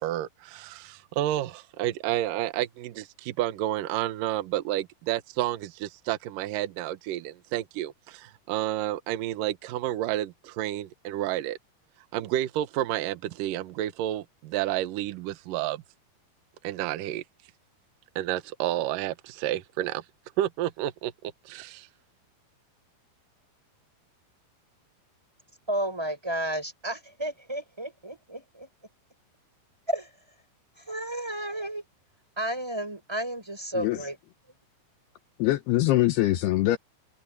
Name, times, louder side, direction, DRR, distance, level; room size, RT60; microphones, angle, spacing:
voice 1, 0.0-11.6 12.1-15.8 16.6-17.2 18.2-20.0 20.4-21.9, right 13 dB, 70° right, 2.2 m, -30 dB
voice 2, 25.7-28.7 29.9-30.1 30.8-31.8 32.4-34.2 34.5-34.6, right 1 dB, 5° right, 6.1 m, -32 dB
voice 3, 35.4-36.8, left 16 dB, 75° left, 2.6 m, -23 dB
omnidirectional pair, 5.2 m